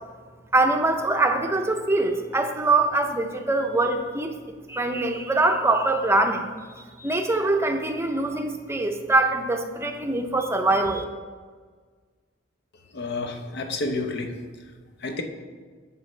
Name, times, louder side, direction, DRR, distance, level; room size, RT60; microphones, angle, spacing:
voice 1, 0.5-4.3 4.7-6.5 7.0-11.0, right 2 dB, 15° right, 5 dB, 0.6 m, -23 dB
voice 2, 12.9-14.3 15.0-15.2, left 2 dB, 60° left, 5 dB, 0.8 m, -29 dB
9.5 x 6.8 x 3.3 m, 1.5 s
head